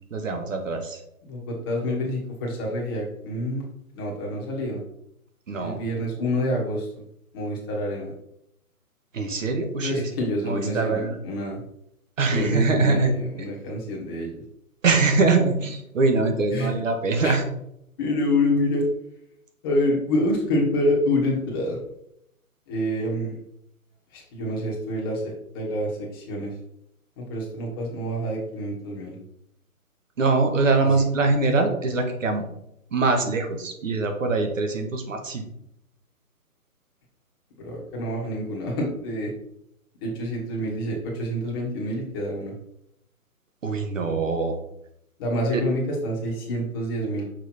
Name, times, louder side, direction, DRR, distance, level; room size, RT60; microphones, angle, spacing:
voice 1, 0.1-1.0 5.5-5.8 9.1-10.1 10.4-11.2 12.2-13.1 14.8-17.4 30.2-32.4 32.9-35.5 43.6-44.6, right 3 dB, 55° right, 5 dB, 1.6 m, -23 dB
voice 2, 1.2-3.6 3.9-4.8 5.6-6.9 7.3-8.1 9.8-11.6 12.3-14.4 16.5-16.7 17.2-17.3 18.0-18.8 19.6-21.8 22.7-23.3 24.1-26.5 27.2-29.2 30.8-31.0 37.6-39.3 40.0-42.5 45.2-47.2, left 1 dB, 15° left, -3 dB, 1.3 m, -27 dB
6.2 x 5.1 x 4.3 m, 0.76 s
hypercardioid pair, 160°, 45 cm